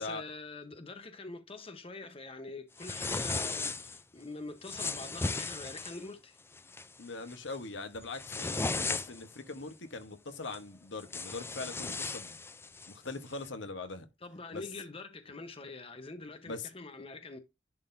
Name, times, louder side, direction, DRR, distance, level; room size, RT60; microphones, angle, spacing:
voice 1, 0.0-6.4 14.2-17.4, left 3 dB, 30° left, 1.0 m, -45 dB
sound 1, 2.8-4.0 4.6-6.0 6.5-6.9 7.3-7.5 8.0-9.3 10.5-10.6 11.0-12.9, left 3 dB, 15° left, 0.4 m, -36 dB
voice 2, 7.0-12.4 12.9-14.1 14.5-14.6 16.5-16.7, left 3 dB, 85° left, 1.2 m, -41 dB
11.0 x 3.9 x 2.7 m
head